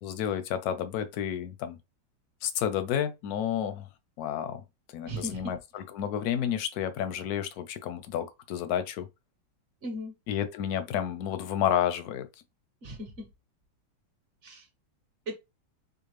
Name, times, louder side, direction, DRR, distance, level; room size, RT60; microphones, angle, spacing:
voice 1, 0.0-1.8 2.4-3.9 4.2-4.6 4.9-9.1 10.3-12.3, left 9 dB, 70° left, 0.9 m, -30 dB
voice 2, 5.0-5.6 9.8-10.1 12.8-13.3 14.4-14.7 15.3-15.4, right 1 dB, 45° right, 1.1 m, -37 dB
5.0 x 2.3 x 3.2 m
omnidirectional pair, 2.2 m